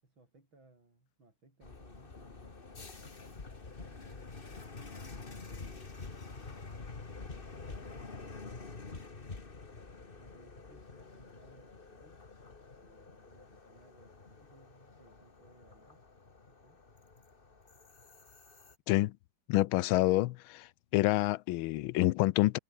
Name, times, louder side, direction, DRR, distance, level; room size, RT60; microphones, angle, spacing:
voice 1, 0.0-2.8 3.7-4.3 7.5-12.2 12.8-16.0 16.5-16.8, right 2 dB, 70° right, 7.5 m, -63 dB
sound 1, 1.6-18.8, left 4 dB, 25° left, 2.0 m, -48 dB
voice 2, 19.5-20.7 20.9-22.6, left 17 dB, 85° left, 1.4 m, -27 dB
omnidirectional pair, 2.2 m